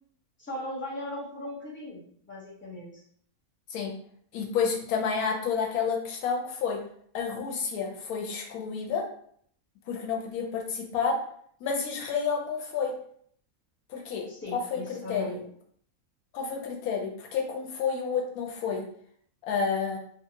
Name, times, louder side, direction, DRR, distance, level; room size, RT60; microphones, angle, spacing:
voice 1, 0.4-3.0 14.3-15.4, left 1 dB, 10° left, -7 dB, 0.7 m, -38 dB
voice 2, 4.3-6.8 7.1-9.0 9.9-11.2 11.6-12.9 13.9-15.4 16.3-18.8 19.4-20.0, left 6 dB, 90° left, 1 dB, 1.1 m, -30 dB
2.6 x 2.4 x 2.8 m, 0.63 s
omnidirectional pair, 1.5 m